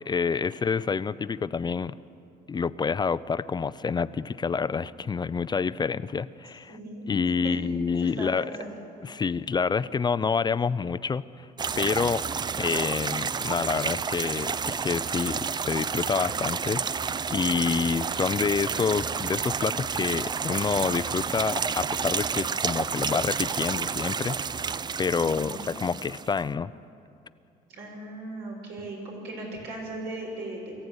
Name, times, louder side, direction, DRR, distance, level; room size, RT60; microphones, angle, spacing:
voice 1, 0.1-2.0 2.5-6.8 7.1-8.6 9.0-11.5 11.8-12.2 12.6-24.7 25.0-26.7, left 5 dB, 25° left, 15 dB, 0.5 m, -28 dB
voice 2, 6.7-7.6 8.0-8.8 12.5-12.6 25.3-25.7 27.7-30.7, right 1 dB, 85° right, -1 dB, 7.1 m, -38 dB
sound 1, 11.6-26.4, right 6 dB, 25° right, 0.4 m, -30 dB
23.0 x 15.0 x 9.7 m, 2.6 s
cardioid pair, 110°, 17 cm